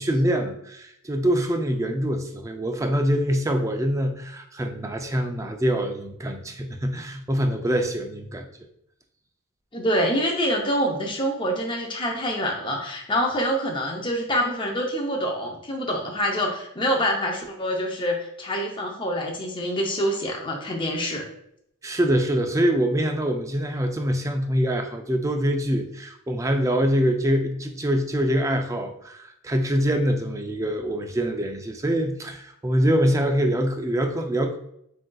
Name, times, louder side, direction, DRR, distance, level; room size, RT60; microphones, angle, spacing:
voice 1, 0.0-8.5 21.8-34.6, equal, 15° right, 5 dB, 0.3 m, -24 dB
voice 2, 9.7-21.2, equal, 25° left, 1 dB, 0.6 m, -26 dB
7.5 x 2.5 x 2.3 m, 0.73 s
head